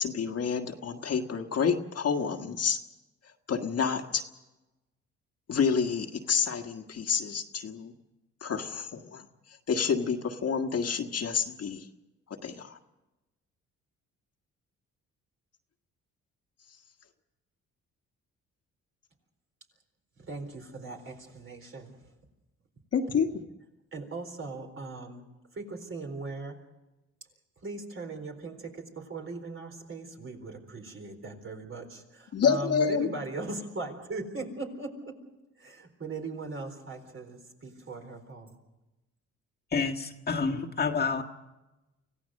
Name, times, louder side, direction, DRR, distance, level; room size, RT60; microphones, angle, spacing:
voice 1, 0.0-2.8 3.5-4.2 5.5-7.9 8.4-9.2 9.7-11.8 12.4-12.8 22.9-23.3 32.3-33.1, left 6 dB, 55° left, 5 dB, 1.6 m, -28 dB
voice 2, 20.2-21.9 23.9-25.3 25.5-26.6 27.6-35.2 35.6-38.6, right 3 dB, 45° right, 4 dB, 4.1 m, -39 dB
voice 3, 39.7-41.2, left 5 dB, 30° left, 1 dB, 1.6 m, -29 dB
25.0 x 16.5 x 6.6 m, 1.0 s
cardioid pair, 90°, 30 cm